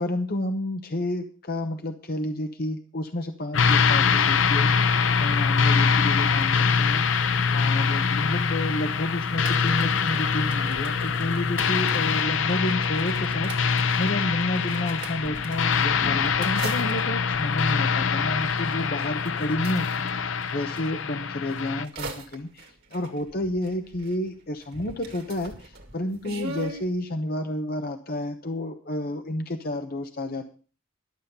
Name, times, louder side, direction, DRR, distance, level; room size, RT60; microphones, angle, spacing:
voice 1, 0.0-30.5, left 1 dB, 45° left, 7 dB, 1.0 m, -30 dB
sound 1, 3.5-21.9, left 6 dB, 60° left, 0.6 m, -24 dB
sound 2, 9.3-20.9 21.5-24.4 24.6-26.9, right 3 dB, 50° right, 2.1 m, -41 dB
12.0 x 7.2 x 6.8 m, 0.38 s
head